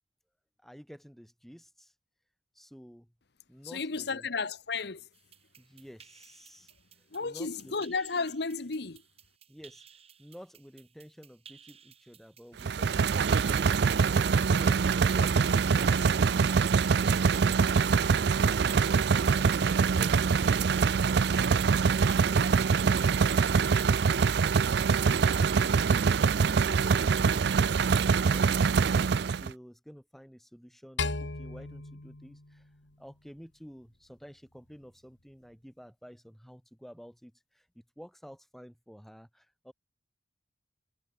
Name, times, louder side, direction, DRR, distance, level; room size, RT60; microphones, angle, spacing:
voice 1, 0.6-1.9 2.5-3.1 3.5-4.3 5.6-6.7 7.2-7.9 9.5-9.9 10.2-13.9 14.5-14.9 18.5-19.6 20.0-27.8 28.1-32.7 33.0-39.7, equal, ahead, 3.7 m, -51 dB
voice 2, 3.7-5.0 7.1-9.0, left 4 dB, 60° left, 1.1 m, -33 dB
sound 1, 5.1-24.9, right 7 dB, 35° right, 7.6 m, -58 dB
sound 2, 12.6-29.5, right 5 dB, 60° right, 0.4 m, -24 dB
sound 3, 31.0-33.4, left 3 dB, 75° left, 2.6 m, -37 dB
head